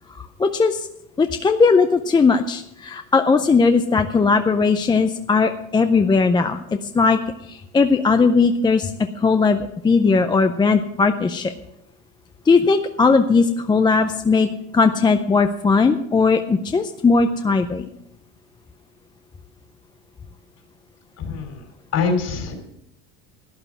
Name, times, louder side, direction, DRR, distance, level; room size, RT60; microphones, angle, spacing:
voice 1, 0.1-0.9 1.2-7.2 7.4-8.9 9.2-11.5 12.5-17.8, left 4 dB, 10° left, 8 dB, 0.4 m, -18 dB
voice 2, 21.2-22.7, left 5 dB, 45° left, 5 dB, 3.2 m, -25 dB
12.0 x 9.7 x 6.0 m, 0.81 s
supercardioid pair, 125°, 37 cm